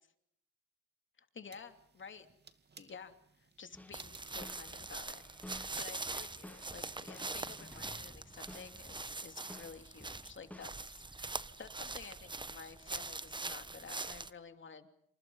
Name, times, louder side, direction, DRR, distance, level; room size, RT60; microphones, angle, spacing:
voice 1, 1.2-2.3 2.8-11.3 11.6-14.9, left 5 dB, 40° left, 7 dB, 3.0 m, -52 dB
sound 1, 1.5-8.8, right 5 dB, 35° right, 2.4 m, -61 dB
sound 2, 3.7-9.2 9.5-10.7, left 1 dB, 5° left, 1.2 m, -54 dB
sound 3, 3.9-14.3, right 3 dB, 15° right, 1.1 m, -43 dB
28.0 x 27.5 x 5.6 m, 0.73 s
cardioid pair, 90°, 30 cm